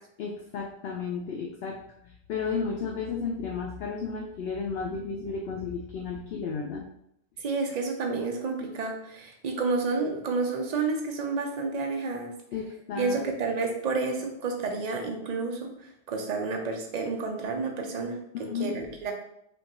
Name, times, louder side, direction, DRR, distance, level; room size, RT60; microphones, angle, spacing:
voice 1, 0.2-6.8 12.5-13.2 18.3-18.8, left 5 dB, 65° left, 0 dB, 0.7 m, -33 dB
voice 2, 7.4-12.3 13.0-18.2 18.5-19.1, right 4 dB, 45° right, 2 dB, 0.6 m, -30 dB
5.2 x 2.5 x 3.0 m, 0.75 s
omnidirectional pair, 1.3 m